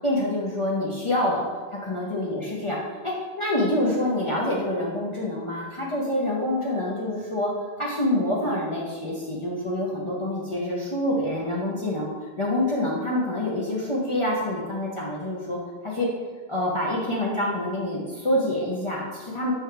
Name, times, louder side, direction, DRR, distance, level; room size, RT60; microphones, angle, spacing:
voice 1, 0.0-2.8 3.0-7.5 7.8-12.1 12.4-16.1 16.5-19.5, left 1 dB, 35° left, -5 dB, 0.6 m, -26 dB
4.7 x 3.2 x 3.2 m, 1.4 s
omnidirectional pair, 1.1 m